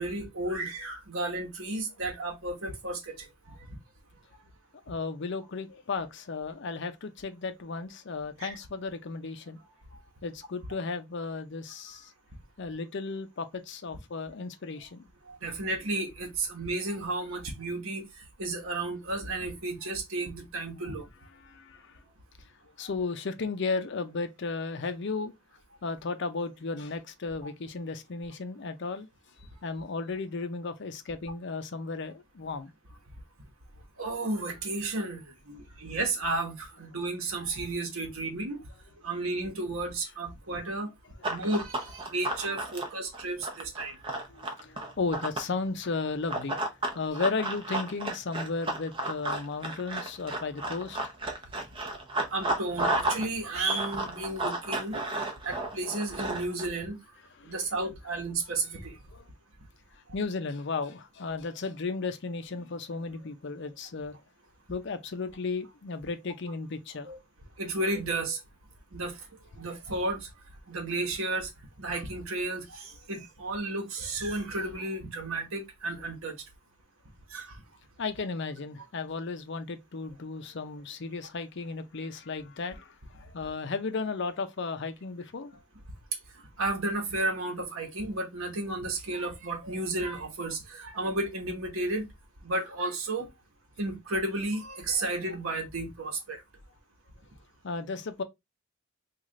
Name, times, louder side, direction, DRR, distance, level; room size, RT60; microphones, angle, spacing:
voice 1, 0.0-3.6 8.4-8.5 15.3-21.1 34.0-38.6 39.0-40.9 41.2-44.0 52.3-55.0 55.4-57.0 57.4-59.0 61.3-61.4 67.0-67.2 67.6-68.4 68.9-69.3 69.5-70.3 70.7-71.5 71.8-76.4 77.3-77.6 86.6-92.1 92.4-93.3 93.8-96.4, right 2 dB, 70° right, 1.1 m, -33 dB
voice 2, 4.9-9.6 10.2-12.1 12.6-15.1 21.4-22.0 22.8-25.3 25.8-29.1 29.6-32.7 44.3-46.6 46.9-51.0 57.4-57.5 59.1-59.3 60.1-64.2 64.7-67.1 78.0-85.6 97.6-98.2, left 4 dB, 55° left, 0.5 m, -34 dB
Run, 41.2-45.5 46.3-53.2 53.5-56.6, right 2 dB, 25° right, 0.6 m, -32 dB
3.2 x 2.4 x 3.7 m
head